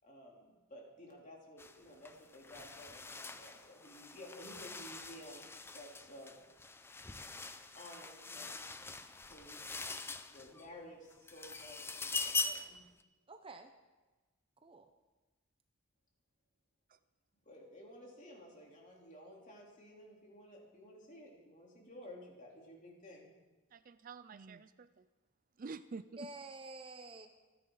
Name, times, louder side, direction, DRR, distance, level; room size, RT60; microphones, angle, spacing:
voice 1, 0.0-5.5 5.7-6.4 7.7-10.0 10.3-12.8 17.5-23.3, left 1 dB, 40° left, -2 dB, 3.5 m, -54 dB
sound 1, 1.6-1.8 2.1-10.7 11.1-12.8, left 3 dB, 10° left, 0.5 m, -43 dB
voice 2, 13.3-13.7 14.6-14.9 26.2-27.3, right 2 dB, 25° right, 6 dB, 0.8 m, -49 dB
voice 3, 23.7-25.0 25.6-26.3, right 4 dB, 40° right, 14 dB, 0.4 m, -48 dB
26.0 x 10.5 x 4.0 m, 1.2 s
head